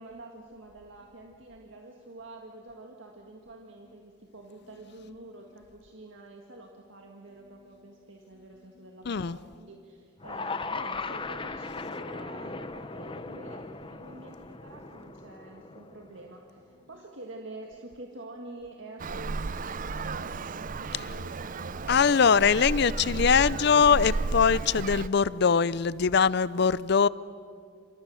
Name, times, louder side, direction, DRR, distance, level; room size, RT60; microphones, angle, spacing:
voice 1, 0.0-21.9, right 2 dB, 75° right, 1.8 m, -47 dB
voice 2, 9.1-9.4 21.9-27.1, left 6 dB, 60° left, 0.5 m, -22 dB
sound 1, 10.2-16.5, left 3 dB, 25° left, 0.9 m, -38 dB
Traffic noise roadway noise, 19.0-25.1, right 3 dB, 45° right, 0.6 m, -33 dB
28.0 x 26.5 x 6.4 m
head